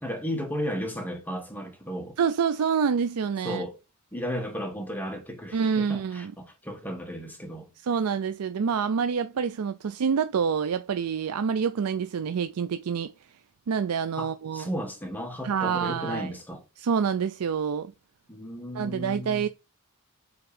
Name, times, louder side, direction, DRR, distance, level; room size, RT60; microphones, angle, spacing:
voice 1, 0.0-2.2 3.4-3.7 4.1-7.7 14.2-16.6 18.3-19.5, equal, 10° left, 1.2 m, -34 dB
voice 2, 2.2-3.6 5.5-6.3 7.8-13.1 13.7-14.7 15.4-16.3 16.8-17.9 18.7-19.5, right 6 dB, 80° right, 0.4 m, -27 dB
7.8 x 3.6 x 3.4 m
head